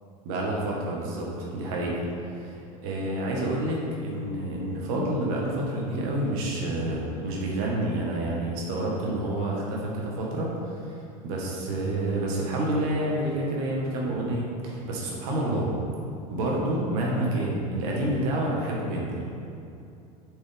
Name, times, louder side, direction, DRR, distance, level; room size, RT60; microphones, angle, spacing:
voice 1, 0.2-2.0 2.4-2.6 2.8-10.5 11.2-15.7 16.3-19.2, right 1 dB, 70° right, -3 dB, 1.5 m, -28 dB
6.8 x 5.3 x 3.6 m, 2.7 s
supercardioid pair, 100°, 19 cm